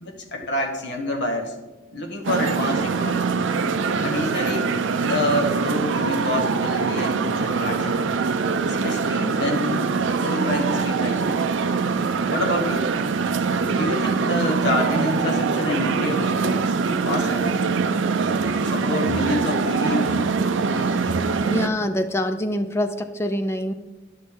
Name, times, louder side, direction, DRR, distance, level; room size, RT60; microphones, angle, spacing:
voice 1, 0.0-1.5 1.9-3.4 4.0-8.0 8.7-11.4 12.3-12.9 13.6-16.7 17.0-17.7 18.6-20.3 20.6-21.2, left 1 dB, 55° left, 1 dB, 1.2 m, -28 dB
sound 1, 2.2-21.7, right 5 dB, 70° right, 0.5 m, -23 dB
voice 2, 21.4-23.7, left 1 dB, 15° left, 9 dB, 0.4 m, -25 dB
10.5 x 6.2 x 3.6 m, 1.1 s
head